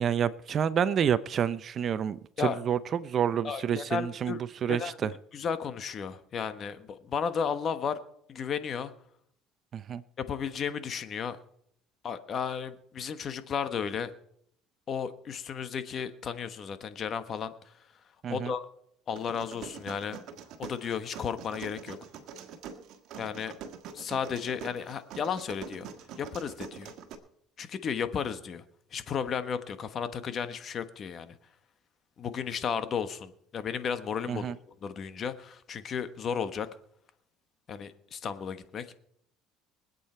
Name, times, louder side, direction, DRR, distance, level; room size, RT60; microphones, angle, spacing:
voice 1, 0.0-5.1 9.7-10.0 18.2-18.5 34.3-34.5, right 8 dB, 40° right, 0.6 m, -29 dB
voice 2, 3.4-4.4 4.7-4.9 5.3-8.0 8.3-8.9 10.2-11.4 12.0-14.1 14.9-17.5 18.3-18.7 19.1-20.2 20.6-22.0 23.2-23.5 23.9-25.9 26.2-26.9 27.6-28.6 28.9-31.3 32.2-34.5 34.8-36.7 37.7-38.8, left 7 dB, 40° left, 1.2 m, -33 dB
sound 1, 19.2-27.1, right 7 dB, 65° right, 1.7 m, -44 dB
23.5 x 8.4 x 4.5 m
supercardioid pair, 110°, 0 cm